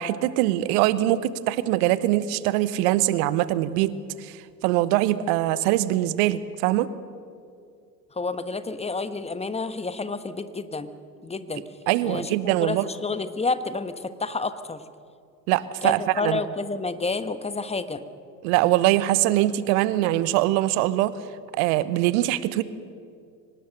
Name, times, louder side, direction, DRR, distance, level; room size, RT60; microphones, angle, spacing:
voice 1, 0.0-3.9 4.2-6.9 11.9-12.8 15.5-16.4 18.4-21.1 21.6-22.6, right 15 dB, 55° right, 16 dB, 1.1 m, -23 dB
voice 2, 8.1-10.9 11.2-11.6 12.0-14.8 15.8-18.0, left 3 dB, 10° left, 12 dB, 1.3 m, -29 dB
24.5 x 19.0 x 6.7 m, 2.3 s
figure-of-eight pair, 70°, 50 cm